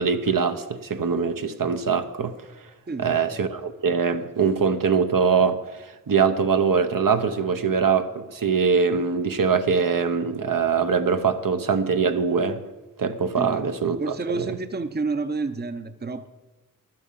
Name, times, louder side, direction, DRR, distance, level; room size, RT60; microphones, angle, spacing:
voice 1, 0.0-2.3 3.0-12.6 13.0-14.5, right 5 dB, 70° right, 0.9 m, -23 dB
voice 2, 2.9-3.4 13.4-13.6 14.0-16.3, right 3 dB, 30° right, 0.6 m, -29 dB
11.5 x 8.9 x 7.3 m
wide cardioid pair, 75°, 35 cm